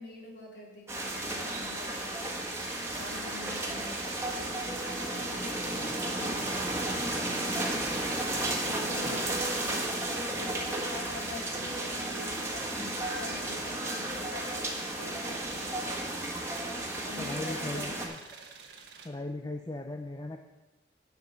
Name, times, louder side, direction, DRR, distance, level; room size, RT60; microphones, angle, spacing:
voice 1, 0.0-17.9, left 1 dB, 75° left, -3 dB, 3.7 m, -45 dB
sound 1, 0.9-18.1, right 1 dB, 15° right, 1.5 m, -33 dB
sound 2, 2.3-19.1, right 5 dB, 70° right, 1.3 m, -50 dB
voice 2, 17.2-18.2 19.0-20.4, left 2 dB, 20° left, 4 dB, 0.5 m, -38 dB
10.5 x 5.8 x 7.9 m, 1.1 s
head